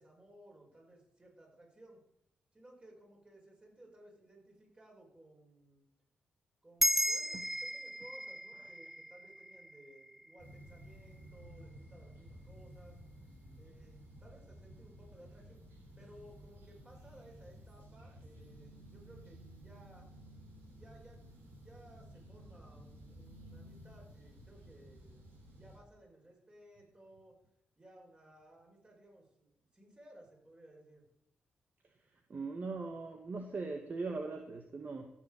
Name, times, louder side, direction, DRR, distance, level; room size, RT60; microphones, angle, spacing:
voice 1, 0.0-2.0 2.5-5.8 6.6-13.0 13.6-15.7 16.0-20.1 20.7-21.2 21.5-27.4 27.8-31.1, right 1 dB, 25° right, -1 dB, 6.5 m, -59 dB
sound 1, 6.8-11.5, equal, 5° right, 0.4 m, -36 dB
sound 2, 10.4-25.8, right 1 dB, 85° right, 4.5 m, -54 dB
voice 2, 31.8-35.1, right 3 dB, 50° right, 4 dB, 1.5 m, -40 dB
14.5 x 7.7 x 7.1 m, 0.79 s
cardioid pair, 60°, 4 cm